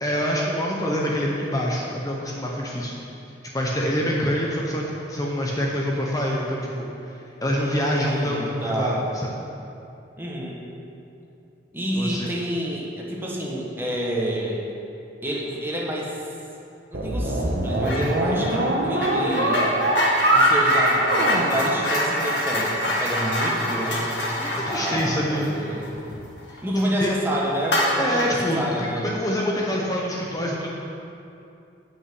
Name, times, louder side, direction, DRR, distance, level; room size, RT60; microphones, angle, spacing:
voice 1, 0.0-3.0 3.5-9.3 11.9-12.3 24.4-25.5 26.8-27.1 28.0-30.7, equal, 20° left, -3 dB, 0.9 m, -26 dB
voice 2, 7.5-9.0 10.2-10.6 11.7-14.6 15.2-16.2 16.9-19.7 20.3-24.2 24.7-25.9 26.6-29.1, equal, 15° right, -4 dB, 1.5 m, -28 dB
sound 1, 16.9-22.4, right 1 dB, 70° right, 1.3 m, -22 dB
sound 2, 17.8-18.1 18.4-26.6 26.9-27.1 27.6-28.4, left 1 dB, 75° left, 1.7 m, -26 dB
8.9 x 5.7 x 7.9 m, 2.7 s
head